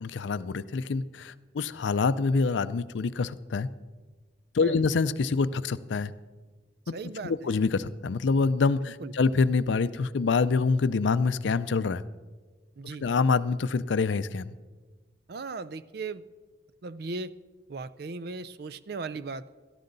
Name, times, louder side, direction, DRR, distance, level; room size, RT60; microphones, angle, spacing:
voice 1, 0.0-3.7 4.5-6.1 7.2-12.0 13.0-14.5, left 4 dB, 75° left, 14 dB, 0.4 m, -26 dB
voice 2, 6.9-7.5 8.8-9.1 12.8-13.1 15.3-16.2 16.8-17.3 17.7-19.6, right 3 dB, 55° right, 16 dB, 0.4 m, -37 dB
17.0 x 13.0 x 4.0 m, 1.3 s
head